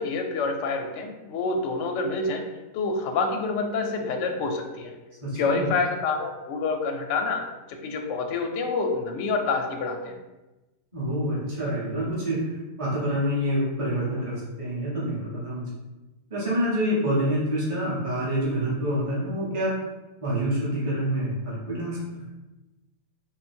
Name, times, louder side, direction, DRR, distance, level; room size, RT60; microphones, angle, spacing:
voice 1, 0.0-2.4 2.7-4.9 5.4-10.2, left 4 dB, 70° left, 3 dB, 0.8 m, -27 dB
voice 2, 5.2-5.7 10.9-15.7 16.3-19.8 20.2-22.1, equal, 25° right, -7 dB, 1.2 m, -27 dB
3.9 x 2.2 x 4.3 m, 1.1 s
omnidirectional pair, 1.5 m